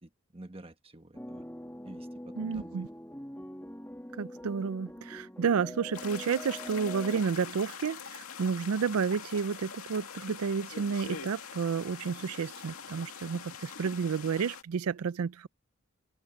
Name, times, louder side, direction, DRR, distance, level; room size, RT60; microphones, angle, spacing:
voice 1, 0.0-1.4 1.8-2.8, right 1 dB, 25° right, 1.3 m, -49 dB
sound 1, 1.1-7.2, equal, 10° left, 2.5 m, -44 dB
voice 2, 2.4-2.9 4.2-15.5, right 6 dB, 90° right, 0.4 m, -31 dB
sound 2, 5.9-14.6, left 6 dB, 85° left, 2.3 m, -44 dB
head